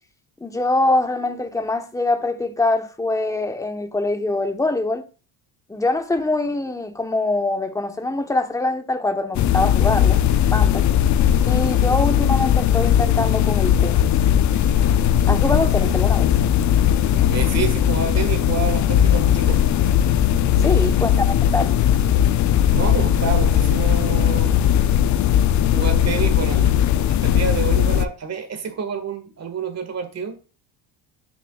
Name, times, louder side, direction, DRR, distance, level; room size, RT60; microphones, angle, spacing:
voice 1, 0.4-5.0 5.7-10.2 10.5-10.9 11.4-14.1 15.3-16.3 20.6-21.2 21.5-21.8, left 2 dB, 5° left, 1.0 m, -23 dB
sound 1, 9.3-28.1, left 10 dB, 40° left, 0.5 m, -18 dB
Bass guitar, 14.5-24.4, right 4 dB, 20° right, 3.9 m, -37 dB
voice 2, 17.3-19.6 20.5-21.2 22.7-24.6 25.7-26.8 27.2-30.4, right 6 dB, 35° right, 1.6 m, -28 dB
9.2 x 7.1 x 2.3 m
cardioid pair, 135°, 44 cm